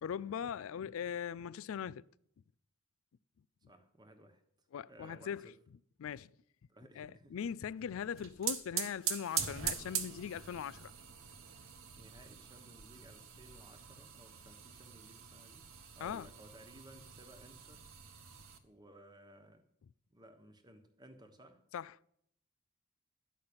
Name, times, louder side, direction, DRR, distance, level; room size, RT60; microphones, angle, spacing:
voice 1, 0.0-2.1 4.7-5.5 6.0-6.3 7.0-10.9 16.0-16.3 21.7-21.9, left 8 dB, 70° left, 0.3 m, -40 dB
voice 2, 3.7-4.4 4.9-5.6 6.7-7.3 8.7-8.9 11.9-15.6 15.9-17.9 18.6-19.6 20.1-21.6, right 1 dB, 20° right, 1.2 m, -58 dB
sound 1, 8.0-18.6, right 8 dB, 65° right, 1.1 m, -42 dB
12.0 x 5.6 x 8.7 m
head